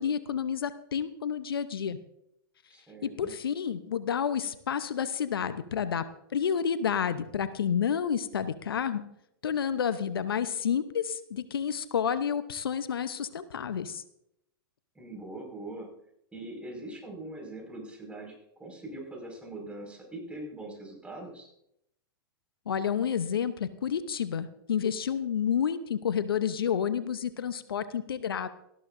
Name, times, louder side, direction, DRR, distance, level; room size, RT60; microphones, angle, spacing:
voice 1, 0.0-2.0 3.2-6.0 6.3-9.0 9.4-14.0 22.7-28.5, left 8 dB, 75° left, 13 dB, 0.9 m, -30 dB
voice 2, 2.7-3.3 14.9-15.9 16.3-21.5, right 2 dB, 10° right, 0 dB, 5.5 m, -42 dB
18.5 x 14.0 x 2.7 m, 0.78 s
hypercardioid pair, 110°, 12 cm